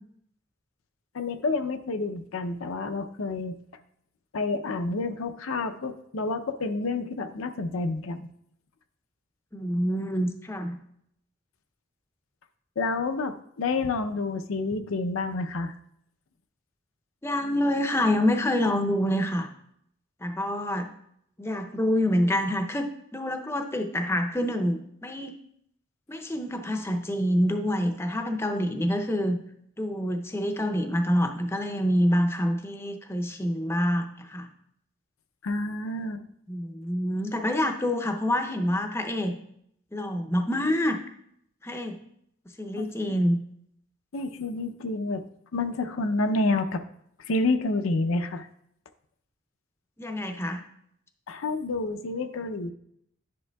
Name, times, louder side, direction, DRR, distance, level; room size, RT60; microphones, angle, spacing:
voice 1, 1.1-3.6 4.3-8.3 12.8-15.7 35.4-36.2 42.7-43.2 44.1-45.2 45.5-46.8 47.2-48.5 51.3-52.7, left 3 dB, 85° left, 8 dB, 0.6 m, -29 dB
voice 2, 9.5-10.8 17.2-19.5 20.2-20.9 21.4-25.4 26.1-29.4 29.8-34.5 36.5-39.4 39.9-41.0 41.6-42.0 42.6-43.4 50.0-50.6, equal, 10° left, 5 dB, 0.5 m, -26 dB
10.5 x 6.5 x 2.3 m, 0.72 s
head